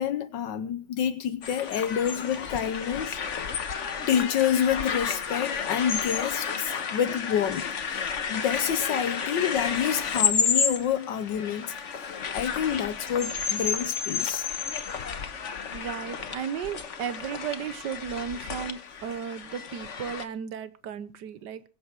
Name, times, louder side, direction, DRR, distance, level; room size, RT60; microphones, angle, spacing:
voice 1, 0.0-3.2 4.1-8.0 8.3-14.5, left 9 dB, 85° left, 1.6 m, -28 dB
sound 1, 1.4-20.2, left 6 dB, 45° left, 1.3 m, -31 dB
voice 2, 15.7-21.6, right 8 dB, 75° right, 1.6 m, -35 dB
22.5 x 8.1 x 4.6 m
omnidirectional pair, 1.9 m